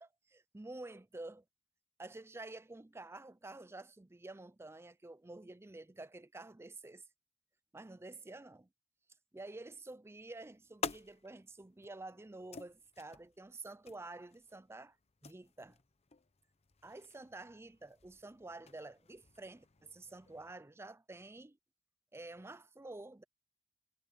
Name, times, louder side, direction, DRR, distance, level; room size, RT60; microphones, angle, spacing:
voice 1, 0.0-1.4 2.0-7.0 7.7-8.7 9.3-15.0 15.2-15.8 16.8-21.6 22.1-23.2, right 2 dB, 15° right, 0.5 m, -50 dB
sound 1, 10.1-20.5, left 5 dB, 35° left, 0.9 m, -50 dB
head